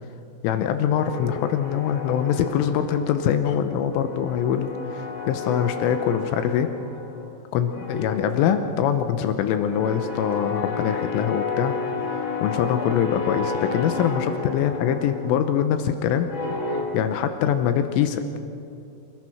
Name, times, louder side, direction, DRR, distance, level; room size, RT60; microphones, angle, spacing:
voice 1, 0.4-6.7 7.5-11.7 12.4-16.3 16.9-18.4, left 9 dB, 85° left, 8 dB, 3.3 m, -23 dB
sound 1, 1.0-3.5 3.8-7.4 7.7-16.8, left 4 dB, 35° left, 2.3 m, -32 dB
27.5 x 17.5 x 6.1 m, 2.7 s
omnidirectional pair, 5.9 m